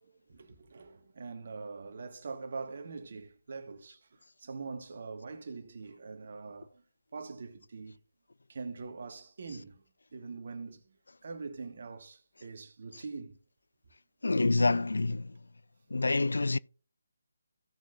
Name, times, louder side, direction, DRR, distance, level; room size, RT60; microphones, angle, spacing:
voice 1, 0.0-6.8 7.1-8.0 8.5-9.8 10.1-10.9 11.2-13.4 14.3-14.5, right 4 dB, 55° right, 1.6 m, -43 dB
voice 2, 14.2-15.3 15.9-16.6, left 3 dB, 75° left, 0.3 m, -27 dB
16.5 x 6.4 x 2.5 m
figure-of-eight pair, 155°, 0 cm